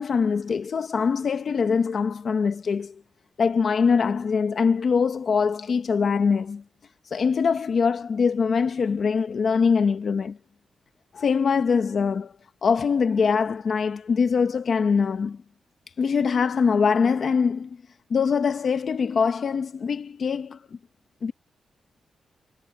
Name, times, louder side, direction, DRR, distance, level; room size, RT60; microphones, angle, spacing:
voice 1, 0.0-3.0 3.4-6.6 7.1-10.4 11.1-12.3 12.6-15.4 16.0-17.8 18.1-20.6 21.2-21.3, left 5 dB, 45° left, 0.9 m, -23 dB
wide cardioid pair, 165°, 0 cm